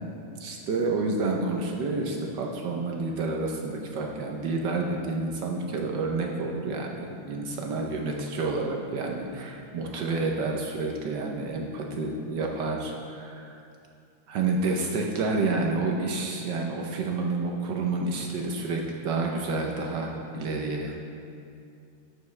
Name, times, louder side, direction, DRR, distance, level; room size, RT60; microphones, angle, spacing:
voice 1, 0.4-13.6 14.3-21.0, right 3 dB, 65° right, 1 dB, 1.2 m, -29 dB
13.0 x 6.9 x 3.2 m, 2.5 s
omnidirectional pair, 2.4 m